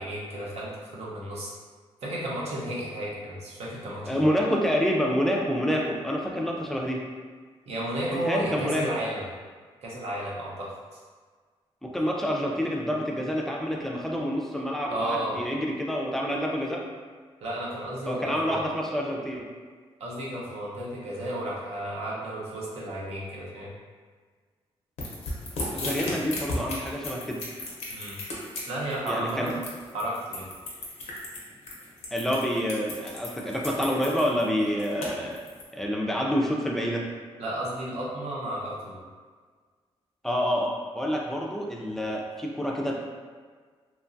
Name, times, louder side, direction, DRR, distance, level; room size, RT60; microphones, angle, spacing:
voice 1, 0.0-1.5 2.0-4.2 7.7-9.3 9.8-11.0 14.9-15.4 17.4-18.6 20.0-23.7 26.1-26.2 27.9-28.2 28.7-29.5 29.9-30.5 37.4-39.0, right 1 dB, 80° right, -5 dB, 0.7 m, -33 dB
voice 2, 4.1-7.0 8.1-8.9 11.8-16.8 18.1-19.5 25.7-27.4 29.1-29.5 32.1-35.4 35.7-37.1 40.2-42.9, equal, 5° left, -1 dB, 0.3 m, -28 dB
sound 1, 25.0-35.6, left 2 dB, 85° left, 0.7 m, -35 dB
2.9 x 2.2 x 2.5 m, 1.5 s
wide cardioid pair, 135°, 11 cm